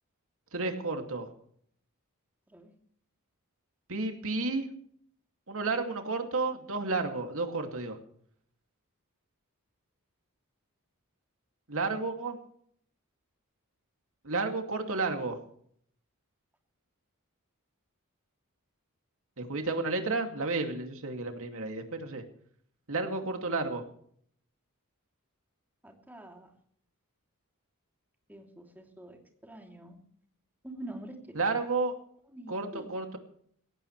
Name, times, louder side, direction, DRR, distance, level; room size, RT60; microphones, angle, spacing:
voice 1, 0.5-1.3 3.9-4.7 5.5-8.0 11.7-12.4 14.2-15.4 19.4-22.2 22.9-23.8 31.3-32.0 32.5-33.2, right 3 dB, 65° right, 5 dB, 2.6 m, -31 dB
voice 2, 25.8-26.5 28.3-29.2 29.4-30.0 30.6-31.1 32.3-32.9, right 1 dB, 10° right, 2 dB, 3.1 m, -45 dB
19.5 x 17.0 x 3.3 m, 0.63 s
head